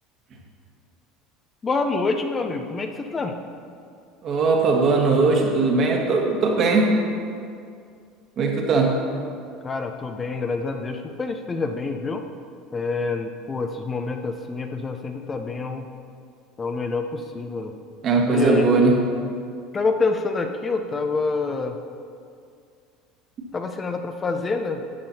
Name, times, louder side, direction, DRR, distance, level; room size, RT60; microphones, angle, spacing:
voice 1, 1.6-3.3 9.6-12.3 12.7-15.9 16.6-17.7 18.3-18.7 19.7-21.8 23.5-24.9, left 3 dB, 30° left, 5 dB, 0.7 m, -27 dB
voice 2, 4.2-6.9 8.4-9.0 18.0-18.9, right 3 dB, 45° right, 0 dB, 1.6 m, -19 dB
11.5 x 8.7 x 2.9 m, 2.3 s
figure-of-eight pair, 70°, 0 cm